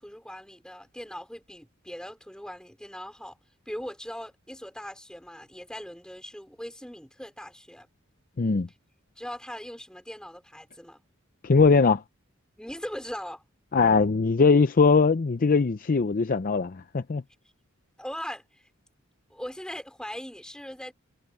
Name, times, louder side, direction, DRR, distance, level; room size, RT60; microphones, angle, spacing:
voice 1, 0.0-3.4 3.7-7.9 9.2-11.0 12.6-13.4 18.0-18.7 19.3-20.9, equal, 5° left, 4.7 m, -40 dB
voice 2, 8.4-8.7 11.4-12.0 13.7-17.2, left 4 dB, 40° left, 0.5 m, -21 dB
head